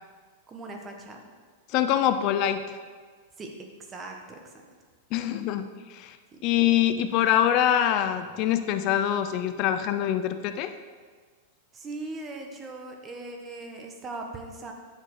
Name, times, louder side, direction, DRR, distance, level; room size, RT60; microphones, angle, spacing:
voice 1, 0.5-1.2 3.4-3.5 3.8-4.6 6.3-6.5 11.7-14.7, right 2 dB, 20° right, 3 dB, 1.0 m, -39 dB
voice 2, 1.7-2.8 5.1-6.2 6.4-10.7, left 10 dB, 40° left, 10 dB, 0.4 m, -24 dB
9.8 x 5.1 x 4.7 m, 1.5 s
supercardioid pair, 150°, 0 cm